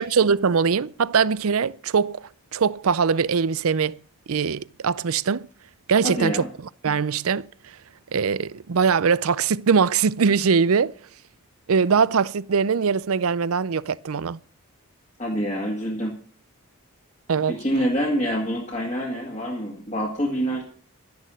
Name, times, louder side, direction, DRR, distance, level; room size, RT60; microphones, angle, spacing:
voice 1, 0.0-4.0 4.3-5.5 5.9-6.4 6.8-7.5 8.1-10.9 11.7-14.4 17.3-17.6, right 5 dB, 75° right, 0.5 m, -22 dB
voice 2, 6.0-6.5 15.2-16.1 17.5-20.6, equal, 30° left, 2.0 m, -26 dB
12.0 x 10.5 x 6.3 m
head